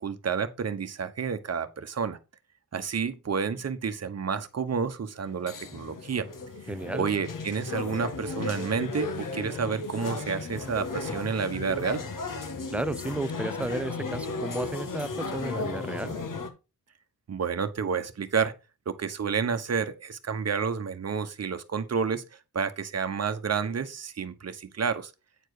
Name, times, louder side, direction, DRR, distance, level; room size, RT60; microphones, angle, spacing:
voice 1, 0.0-2.2 2.7-6.3 7.0-12.0 17.3-18.5 18.9-22.2 22.5-25.1, right 6 dB, 45° right, 1.1 m, -30 dB
sound 1, 5.2-16.5, left 3 dB, 60° left, 1.6 m, -35 dB
voice 2, 6.7-7.1 12.7-16.1, right 2 dB, 5° right, 0.3 m, -33 dB
9.0 x 4.5 x 4.9 m
cardioid pair, 100°, 36 cm